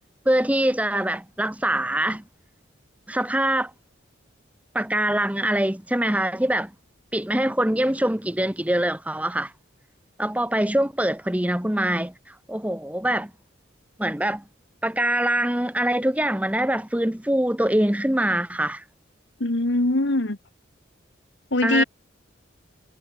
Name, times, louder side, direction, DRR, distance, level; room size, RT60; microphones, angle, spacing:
voice 1, 0.2-2.2 3.1-3.7 4.7-6.7 7.1-9.5 10.2-13.3 14.0-14.4 14.8-18.8 21.6-21.8, right 1 dB, 5° right, 1.0 m, -24 dB
voice 2, 19.4-20.4 21.5-21.8, left 2 dB, 70° left, 1.6 m, -22 dB
head